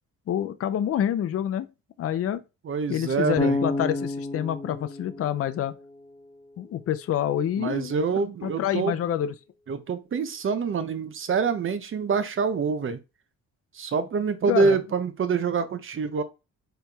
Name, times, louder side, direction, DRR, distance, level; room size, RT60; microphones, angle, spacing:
voice 1, 0.3-1.7 2.0-2.4 2.9-5.7 6.6-8.0 8.4-9.3 14.5-14.8, left 10 dB, 50° left, 0.5 m, -27 dB
voice 2, 2.6-3.6 7.6-9.0 9.7-13.0 13.7-16.2, right 5 dB, 45° right, 0.8 m, -26 dB
Bass guitar, 3.4-6.4, left 2 dB, 15° left, 1.1 m, -30 dB
4.4 x 3.3 x 3.5 m
cardioid pair, 90°, 30 cm